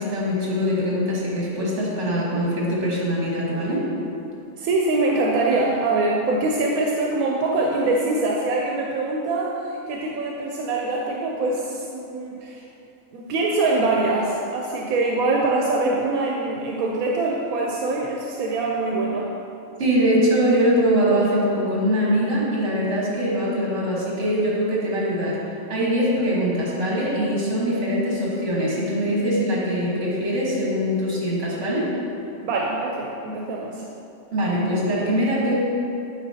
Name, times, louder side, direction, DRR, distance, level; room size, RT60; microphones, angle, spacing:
voice 1, 0.0-3.8 19.8-25.4 25.7-31.9 34.3-35.6, equal, 55° right, -5 dB, 1.7 m, -22 dB
voice 2, 4.6-12.6 13.1-19.3 32.4-33.9, right 2 dB, 85° right, -2 dB, 1.1 m, -24 dB
8.3 x 4.9 x 2.7 m, 2.8 s
omnidirectional pair, 1.5 m